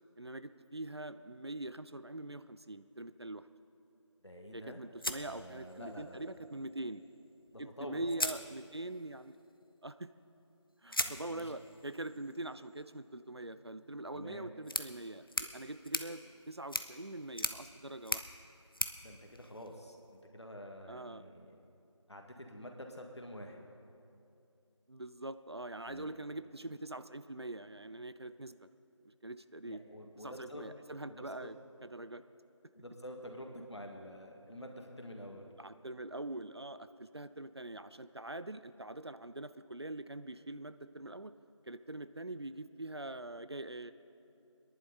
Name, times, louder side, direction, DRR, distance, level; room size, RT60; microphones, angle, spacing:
voice 1, 0.2-3.5 4.5-7.0 7.6-9.4 9.8-10.1 10.8-16.2 16.5-18.2 20.9-21.3 24.9-28.7 29.2-29.8 30.2-31.6 31.8-32.2 35.6-41.3 41.6-43.9, right 2 dB, 55° right, 12 dB, 0.5 m, -43 dB
voice 2, 4.2-4.8 5.2-6.3 7.5-8.1 11.0-11.5 14.1-14.5 19.0-21.6 22.1-23.6 25.9-26.1 29.6-30.7 31.1-31.5 32.8-35.5, equal, 60° left, 2 dB, 1.8 m, -48 dB
sound 1, 5.0-6.1 7.5-7.6 8.1-9.1 10.9-20.1, left 1 dB, 45° left, 0.6 m, -41 dB
21.5 x 11.0 x 4.1 m, 2.7 s
figure-of-eight pair, 175°, 16 cm